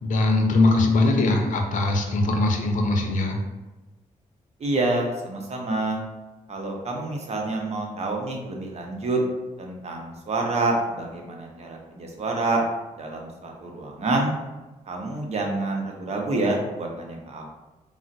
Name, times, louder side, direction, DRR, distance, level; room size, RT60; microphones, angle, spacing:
voice 1, 0.0-3.4, left 2 dB, 65° left, 3 dB, 0.5 m, -21 dB
voice 2, 4.6-6.0 6.5-9.2 9.6-12.6 13.0-14.3 14.9-17.5, right 2 dB, 50° right, 0 dB, 0.7 m, -27 dB
3.7 x 2.1 x 2.6 m, 1.1 s
cardioid pair, 65°, 14 cm